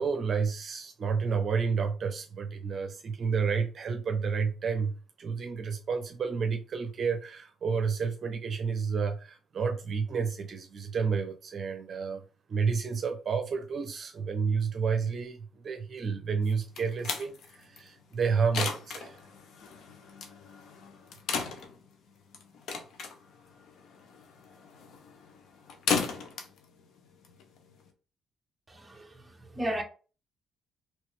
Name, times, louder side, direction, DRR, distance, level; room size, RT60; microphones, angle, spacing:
voice 1, 0.0-12.2 12.5-19.2, right 5 dB, 50° right, 0.6 m, -30 dB
sound 1, 16.4-27.9, left 5 dB, 75° left, 0.8 m, -37 dB
voice 2, 28.7-29.8, right 1 dB, 15° right, 0.9 m, -35 dB
3.2 x 3.1 x 3.2 m
cardioid pair, 90°, 0 cm